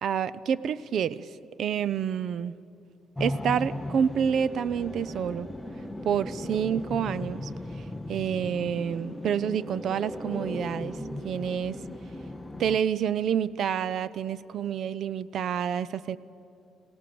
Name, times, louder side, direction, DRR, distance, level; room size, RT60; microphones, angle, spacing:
voice 1, 0.0-1.3 1.6-2.5 3.2-5.5 6.0-7.5 8.1-10.9 11.2-11.8 12.6-16.2, right 8 dB, 60° right, 18 dB, 0.6 m, -28 dB
sound 1, 3.1-12.8, left 1 dB, 5° left, 0.8 m, -37 dB
29.0 x 18.0 x 7.0 m, 2.6 s
cardioid pair, 120°, 0 cm